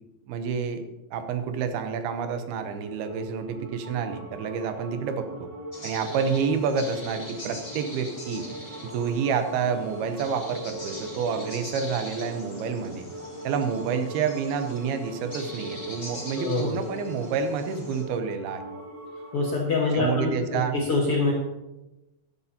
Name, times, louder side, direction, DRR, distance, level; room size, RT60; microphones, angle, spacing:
voice 1, 0.3-0.8 1.1-5.5 5.8-8.5 8.9-13.1 13.4-18.6 19.9-20.8, right 6 dB, 80° right, 8 dB, 2.7 m, -28 dB
sound 1, 2.1-19.7, right 1 dB, 35° right, 2.4 m, -42 dB
sound 2, 5.7-18.0, left 1 dB, 15° left, 2.4 m, -42 dB
voice 2, 16.4-16.7 19.3-21.3, left 3 dB, 60° left, -2 dB, 1.6 m, -25 dB
13.5 x 12.5 x 2.8 m, 1.0 s
omnidirectional pair, 4.5 m